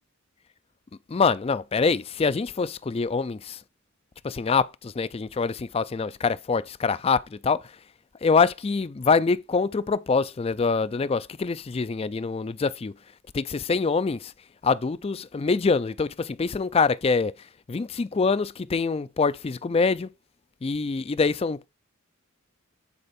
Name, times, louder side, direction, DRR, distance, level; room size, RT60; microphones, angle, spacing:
voice 1, 1.1-3.6 4.2-7.6 8.2-12.9 13.3-14.3 14.6-17.3 17.7-20.1 20.6-21.6, left 4 dB, 25° left, 0.3 m, -25 dB
9.7 x 4.5 x 4.2 m
head